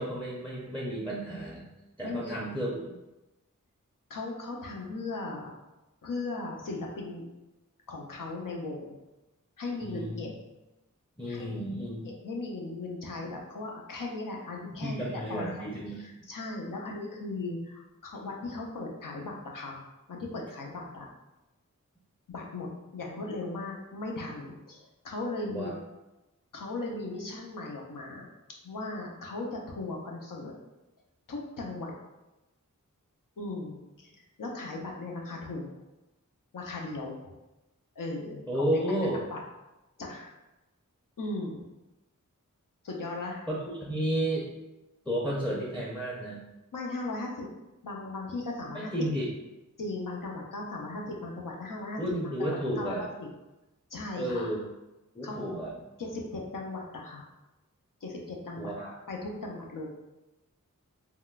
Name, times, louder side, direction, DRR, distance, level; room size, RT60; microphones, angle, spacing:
voice 1, 0.0-1.7 2.0-2.9 9.8-10.2 11.2-12.0 14.8-16.2 25.5-25.7 38.5-39.2 43.5-44.5 45.1-46.4 48.7-49.3 52.0-53.1 54.2-54.6 55.1-55.7 58.6-58.9, right 1 dB, 5° left, -4 dB, 0.6 m, -32 dB
voice 2, 2.0-2.4 4.1-5.5 6.0-7.2 7.9-9.0 9.6-10.3 11.2-11.5 12.0-15.7 16.0-19.8 20.1-21.1 22.3-22.7 22.9-25.7 26.5-28.3 28.6-30.5 31.3-31.9 33.4-34.1 34.4-35.8 36.5-37.3 38.0-39.0 39.3-39.4 40.0-40.3 41.2-41.6 42.8-43.4 46.7-47.5 47.8-49.1 49.8-53.3 53.9-54.5 55.2-55.4 56.0-57.3 58.0-58.7 59.1-59.9, left 2 dB, 85° left, -1 dB, 0.6 m, -37 dB
3.6 x 2.2 x 2.3 m, 1.0 s
wide cardioid pair, 55°, 32 cm